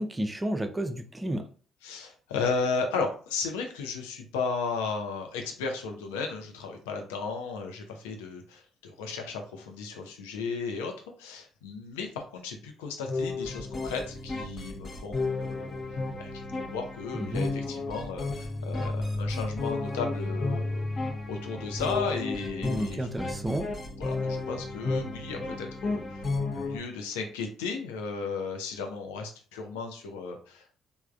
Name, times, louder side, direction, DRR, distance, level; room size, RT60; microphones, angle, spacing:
voice 1, 0.0-1.4 17.2-17.4 22.6-23.7, right 1 dB, 20° right, 7 dB, 0.5 m, -31 dB
voice 2, 1.8-10.9 11.2-23.1 24.0-30.8, left 4 dB, 80° left, 4 dB, 0.5 m, -35 dB
sound 1, 13.1-26.8, left 3 dB, 40° left, 0.7 m, -33 dB
3.3 x 2.1 x 2.5 m, 0.42 s
hypercardioid pair, 50°, 0 cm